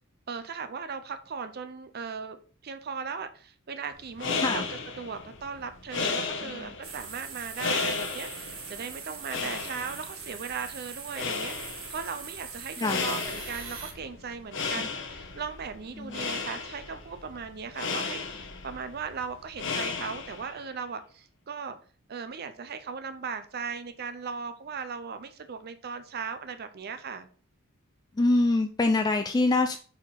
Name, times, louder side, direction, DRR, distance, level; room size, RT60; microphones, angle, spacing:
voice 1, 0.3-2.4 2.6-4.7 5.0-21.8 22.1-27.3, right 5 dB, 45° right, 10 dB, 0.5 m, -38 dB
sound 1, 4.0-20.6, left 4 dB, 60° left, 1.0 m, -35 dB
voice 2, 6.4-6.7 9.3-9.6 12.8-13.0 16.0-16.4 28.1-29.8, left 2 dB, 20° left, 6 dB, 0.3 m, -26 dB
sound 2, 6.8-13.9, right 6 dB, 70° right, 1.4 m, -42 dB
4.8 x 4.3 x 5.6 m, 0.43 s
head